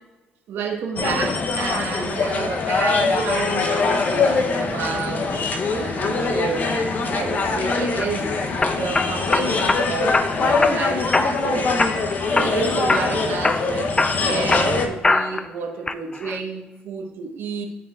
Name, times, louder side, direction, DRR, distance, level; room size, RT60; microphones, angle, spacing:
voice 1, 0.5-6.7 7.1-8.3 8.8-11.7 12.4-13.9 14.2-17.7, right 5 dB, 75° right, 2 dB, 1.1 m, -30 dB
sound 1, 1.0-14.9, left 4 dB, 45° left, 0.7 m, -23 dB
sound 2, 7.7-8.1 8.6-9.8 10.1-10.8 11.1-11.5 11.8-12.6 12.9-13.1 13.4-15.5 15.9-16.4, left 3 dB, 20° left, 0.3 m, -22 dB
12.0 x 4.4 x 2.4 m, 1.1 s
cardioid pair, 95°, 4 cm